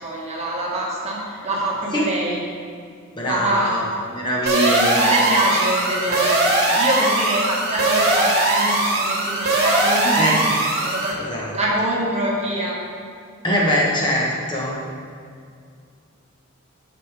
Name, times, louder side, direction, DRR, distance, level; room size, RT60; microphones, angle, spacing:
voice 1, 0.0-2.4 3.2-3.9 4.4-11.2 11.5-12.8, right 1 dB, 30° right, -4 dB, 1.4 m, -25 dB
voice 2, 3.2-5.0 10.2-10.4 11.3-11.5 13.4-14.8, equal, 20° left, -4 dB, 1.0 m, -22 dB
sound 1, 4.5-11.1, right 2 dB, 50° right, 1.5 m, -20 dB
9.0 x 6.2 x 3.3 m, 2.3 s
head